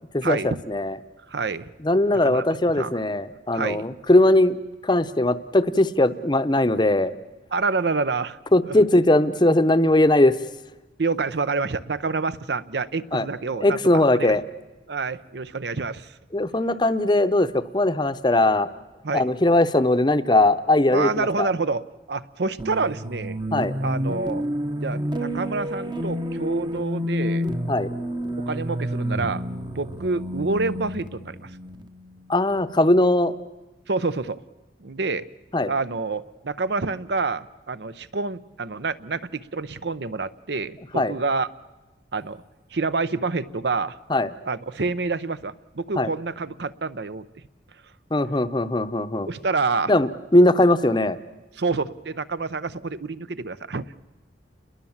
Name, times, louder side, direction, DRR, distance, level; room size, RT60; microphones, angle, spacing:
voice 1, 0.1-1.0 1.8-4.6 4.8-7.1 8.5-10.4 13.1-13.3 13.6-14.4 16.3-18.7 19.1-21.5 23.5-23.7 27.7-27.9 32.3-33.3 35.5-35.7 41.0-41.1 44.1-44.3 46.0-46.1 48.1-49.3 49.9-51.2, left 1 dB, 25° left, 11 dB, 0.8 m, -20 dB
voice 2, 1.3-1.7 2.1-2.4 2.8-2.9 3.5-3.8 7.5-8.4 8.7-8.8 11.0-14.3 14.9-16.1 19.0-19.3 20.9-21.8 22.1-23.4 23.8-24.5 24.8-27.5 28.5-29.4 29.8-31.5 33.9-34.4 34.8-35.2 35.6-41.5 42.1-42.4 42.7-44.0 44.5-47.3 49.2-49.9 51.6-54.0, right 4 dB, 65° right, 15 dB, 0.7 m, -27 dB
sound 1, 22.6-32.5, equal, 25° right, 1.0 m, -29 dB
29.5 x 21.5 x 7.2 m, 1.1 s
head